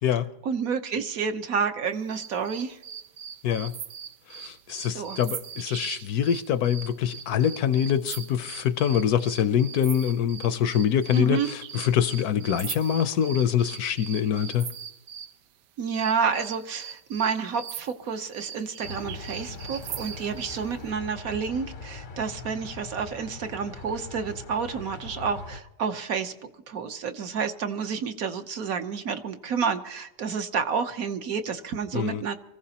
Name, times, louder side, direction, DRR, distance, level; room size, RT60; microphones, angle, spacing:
voice 1, 0.4-2.8 4.9-5.2 11.1-11.5 15.8-26.3 26.7-32.4, right 6 dB, 60° right, 1.2 m, -29 dB
sound 1, 2.1-15.4 15.9-20.7, right 9 dB, 90° right, 1.3 m, -40 dB
voice 2, 3.4-3.8 4.3-14.7 31.9-32.2, left 9 dB, 70° left, 1.0 m, -25 dB
sound 2, 18.8-25.6, left 4 dB, 45° left, 0.7 m, -41 dB
24.5 x 15.0 x 2.8 m
omnidirectional pair, 1.8 m